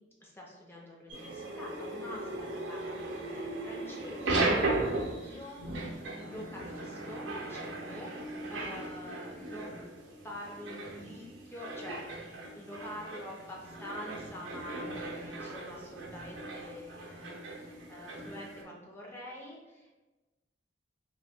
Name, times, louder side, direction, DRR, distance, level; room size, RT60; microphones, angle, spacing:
voice 1, 0.2-4.5 5.2-9.7 10.2-12.1 12.5-20.0, left 1 dB, 15° left, -3 dB, 0.5 m, -46 dB
sound 1, 1.1-18.6, right 2 dB, 85° right, 0.6 m, -37 dB
2.9 x 2.2 x 3.4 m, 1.2 s
head